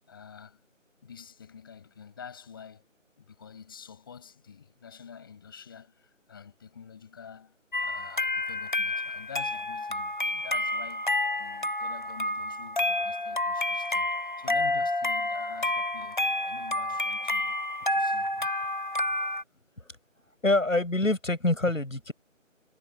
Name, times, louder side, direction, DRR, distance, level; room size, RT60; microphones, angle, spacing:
voice 1, 0.1-0.6 1.0-2.9 3.2-7.6 7.8-11.1 11.4-16.2 16.4-17.6 17.9-18.4, left 7 dB, 15° left, 6.7 m, -47 dB
sound 1, 7.7-19.4, left 1 dB, 40° left, 1.1 m, -29 dB
voice 2, 20.4-22.1, left 2 dB, 80° left, 7.7 m, -25 dB
figure-of-eight pair, 170°, 39 cm